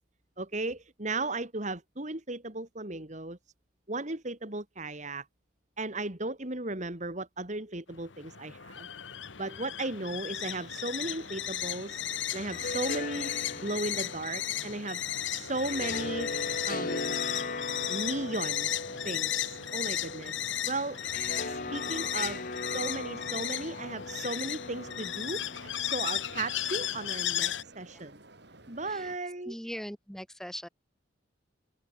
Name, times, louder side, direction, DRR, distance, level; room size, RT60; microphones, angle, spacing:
voice 1, 0.4-3.4 3.9-5.3 5.8-8.9 9.4-12.0 12.3-13.3 13.6-15.0 15.3-16.3 16.6-17.1 17.9-18.7 19.0-21.0 21.5-22.5 22.7-28.2 28.7-29.5, right 2 dB, 40° right, 2.7 m, -36 dB
sound 1, 7.9-27.6, left 11 dB, 70° left, 1.3 m, -35 dB
sound 2, 10.2-29.2, right 2 dB, 60° right, 4.3 m, -53 dB
sound 3, 12.2-27.4, left 3 dB, 45° left, 2.4 m, -39 dB
voice 2, 29.5-30.7, equal, ahead, 5.8 m, -40 dB
open air
head